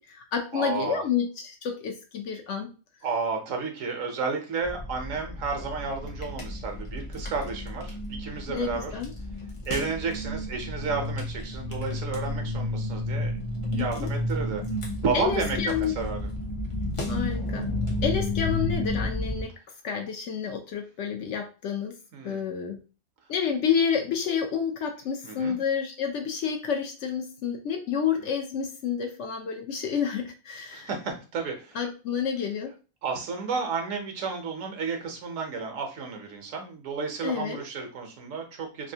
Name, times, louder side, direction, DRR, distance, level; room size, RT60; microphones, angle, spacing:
voice 1, 0.0-2.7 8.5-9.1 13.7-14.1 15.1-15.9 17.1-17.7 18.0-19.5 19.8-21.9 22.2-22.8 23.3-30.9 31.7-32.7 37.2-37.6, left 7 dB, 65° left, 4 dB, 0.8 m, -29 dB
voice 2, 0.5-1.0 3.0-8.9 9.7-13.4 13.6-14.6 15.0-16.3 22.1-22.4 25.2-25.6 30.7-31.8 33.0-38.9, right 4 dB, 70° right, 4 dB, 1.1 m, -32 dB
sound 1, 4.6-19.4, left 1 dB, 45° left, 0.4 m, -32 dB
3.3 x 2.5 x 2.8 m, 0.33 s
omnidirectional pair, 1.5 m